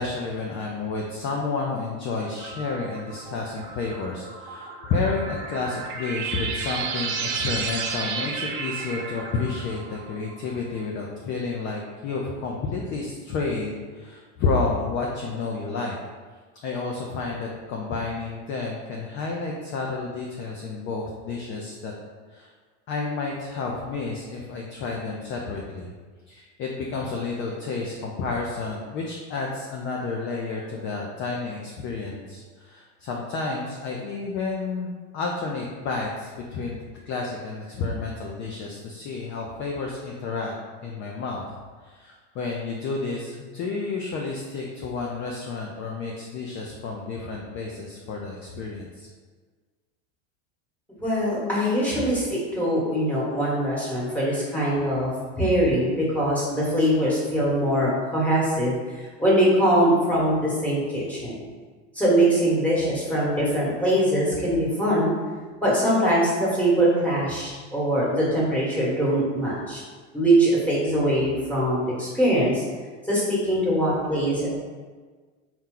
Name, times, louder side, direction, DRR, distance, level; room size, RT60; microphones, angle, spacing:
voice 1, 0.0-16.0 16.6-21.9 22.3-22.5 22.9-25.9 26.3-36.8 37.1-40.5 40.8-41.5 41.8-49.1, left 4 dB, 35° left, -1 dB, 0.5 m, -30 dB
sound 1, 2.4-10.6, right 5 dB, 65° right, 0.7 m, -33 dB
voice 2, 51.0-55.1 55.4-61.4 61.9-65.1 65.6-69.8 70.1-72.6 73.0-74.5, right 1 dB, 5° left, -7 dB, 1.3 m, -22 dB
4.3 x 2.3 x 3.7 m, 1.5 s
supercardioid pair, 120°, 37 cm